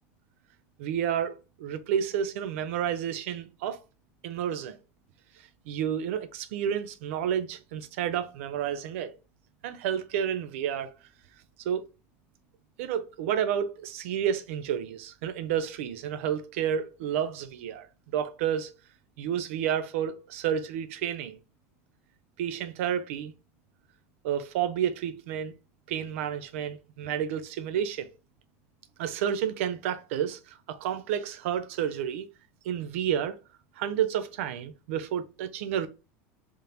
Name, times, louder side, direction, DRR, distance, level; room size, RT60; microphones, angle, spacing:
voice 1, 0.8-3.8 4.2-4.8 5.4-9.1 9.6-10.9 11.6-11.8 12.8-17.9 18.1-18.7 19.2-21.4 22.4-23.3 24.2-25.5 25.9-28.1 29.0-32.3 32.6-33.4 33.8-35.9, right 9 dB, 75° right, 0.5 m, -30 dB
3.7 x 2.5 x 4.2 m
supercardioid pair, 160°, 7 cm